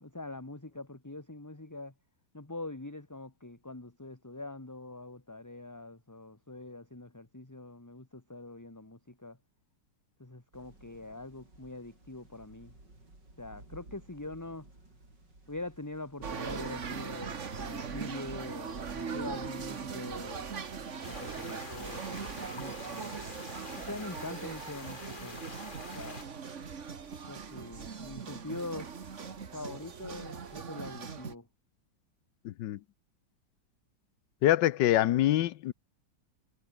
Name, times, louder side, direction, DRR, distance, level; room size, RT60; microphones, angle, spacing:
voice 1, 0.0-1.9 2.3-9.4 10.2-12.7 13.4-14.7 15.5-20.5 20.8-23.2 23.8-25.4 25.9-26.3 27.3-28.9 29.5-31.5, left 2 dB, 10° left, 1.7 m, -43 dB
sound 1, 10.5-25.7, right 2 dB, 75° right, 8.8 m, -60 dB
sound 2, 16.2-31.3, right 6 dB, 45° right, 1.7 m, -40 dB
sound 3, 21.0-26.2, left 4 dB, 30° left, 1.9 m, -47 dB
voice 2, 32.4-32.8 34.4-35.7, left 13 dB, 80° left, 1.4 m, -25 dB
omnidirectional pair, 1.9 m